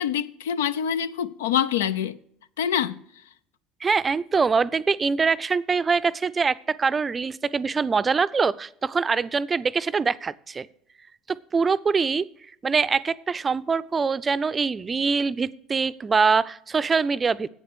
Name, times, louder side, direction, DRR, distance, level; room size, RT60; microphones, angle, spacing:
voice 1, 0.0-2.2 2.6-3.0, left 9 dB, 75° left, 0.4 m, -25 dB
voice 2, 3.8-10.7 11.3-12.2 12.6-17.5, right 5 dB, 25° right, 0.4 m, -24 dB
8.6 x 7.9 x 6.1 m
hypercardioid pair, 65°, 0 cm